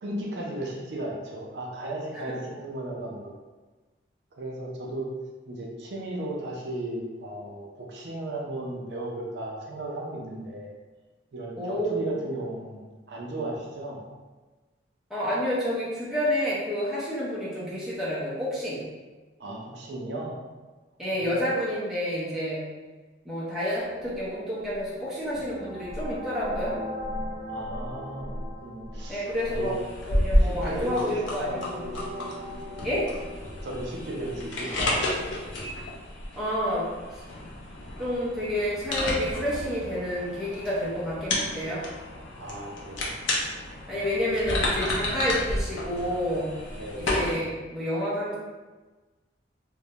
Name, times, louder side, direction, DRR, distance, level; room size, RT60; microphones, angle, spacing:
voice 1, 0.0-3.3 4.4-5.1 5.5-10.7 11.3-14.0 19.4-20.3 21.1-21.3 27.5-29.8 30.4-31.0 31.4-31.6 31.9-32.3 33.6-35.0 42.4-43.1 43.9-44.0 46.8-47.0, right 1 dB, 65° right, -2 dB, 0.4 m, -35 dB
voice 2, 11.6-12.1 15.1-18.9 21.0-22.6 23.2-26.8 29.1-29.7 30.1-31.9 32.8-33.1 36.4-36.9 38.0-41.8 43.9-46.5 47.0-48.3, equal, ahead, -9 dB, 0.5 m, -29 dB
sound 1, 23.8-34.5, left 1 dB, 45° left, 0.7 m, -38 dB
sound 2, 29.2-47.3, left 1 dB, 80° left, 0.5 m, -31 dB
2.3 x 2.0 x 2.7 m, 1.3 s
head